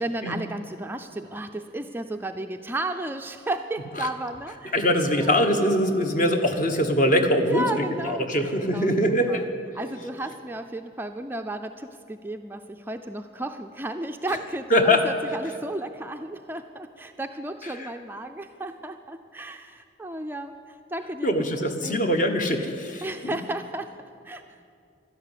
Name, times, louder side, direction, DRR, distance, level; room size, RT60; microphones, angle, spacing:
voice 1, 0.0-4.7 5.2-5.3 7.4-8.3 8.7-9.4 9.7-21.5 21.8-22.0 23.0-23.9 24.2-24.4, right 1 dB, 10° right, 6 dB, 0.4 m, -33 dB
voice 2, 4.7-9.4 14.7-15.1 17.7-17.9 21.2-23.3, equal, 40° left, 5 dB, 1.3 m, -23 dB
12.5 x 11.5 x 9.8 m, 2.5 s
head